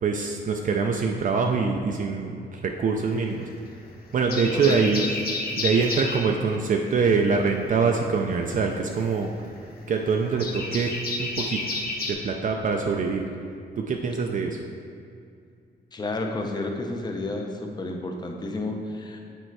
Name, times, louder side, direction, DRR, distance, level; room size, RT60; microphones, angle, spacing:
voice 1, 0.0-3.5 4.1-5.0 5.6-9.3 9.9-11.6 12.1-13.3 13.8-14.6, right 5 dB, 50° right, 2 dB, 0.4 m, -24 dB
sound 1, 3.1-3.8 4.1-6.3 7.9-12.1, left 3 dB, 60° left, 1.0 m, -31 dB
voice 2, 4.5-4.8 15.9-19.2, left 2 dB, 25° left, 2 dB, 0.7 m, -31 dB
8.8 x 4.4 x 4.6 m, 2.4 s
wide cardioid pair, 180°, 18 cm